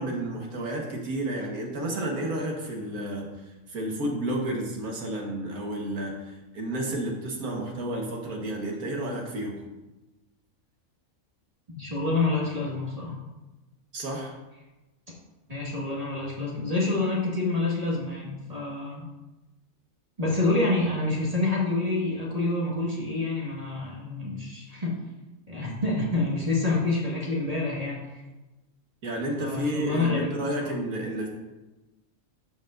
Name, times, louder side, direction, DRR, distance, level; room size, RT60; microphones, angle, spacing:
voice 1, 0.0-9.6 13.9-14.4 29.0-31.3, right 1 dB, 80° right, 0 dB, 1.9 m, -31 dB
voice 2, 11.7-13.2 15.5-19.1 20.2-24.9 25.5-28.2 29.4-30.8, left 2 dB, 25° right, -5 dB, 1.8 m, -27 dB
13.0 x 5.2 x 2.6 m, 1.1 s
omnidirectional pair, 1.5 m